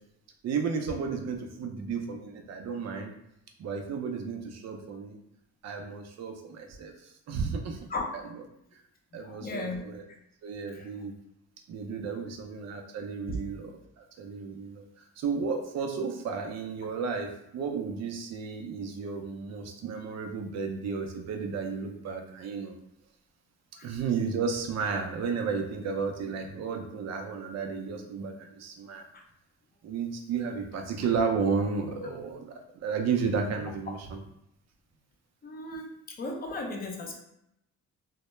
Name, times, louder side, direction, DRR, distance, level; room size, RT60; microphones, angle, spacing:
voice 1, 0.4-3.1 3.6-5.2 5.6-7.8 8.2-8.3 9.1-10.0 10.4-11.1 11.7-22.8 23.8-29.1 29.8-34.2, right 5 dB, 60° right, 4 dB, 0.5 m, -33 dB
voice 2, 9.1-9.8 10.7-10.9 12.2-12.3 13.3-13.4 23.8-23.9 29.1-29.2 35.4-35.9 36.2-37.2, left 2 dB, 30° left, 1 dB, 0.5 m, -36 dB
2.1 x 2.1 x 3.0 m, 0.79 s
cardioid pair, 90°, 30 cm